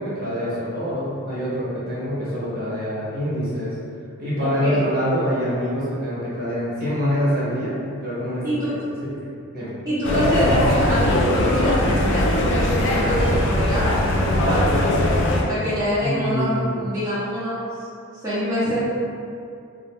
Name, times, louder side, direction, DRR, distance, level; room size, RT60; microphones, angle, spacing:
voice 1, 0.0-3.8 4.2-7.8 8.0-8.4 9.0-9.2 9.5-9.7 16.0-16.8, equal, 45° right, -9 dB, 0.8 m, -25 dB
voice 2, 4.4-4.9 8.4-8.8 9.9-14.8 15.5-17.7 18.2-18.8, equal, 15° right, -13 dB, 0.5 m, -25 dB
sound 1, 10.0-15.4, left 1 dB, 60° left, 0.3 m, -20 dB
2.5 x 2.0 x 2.8 m, 2.4 s
head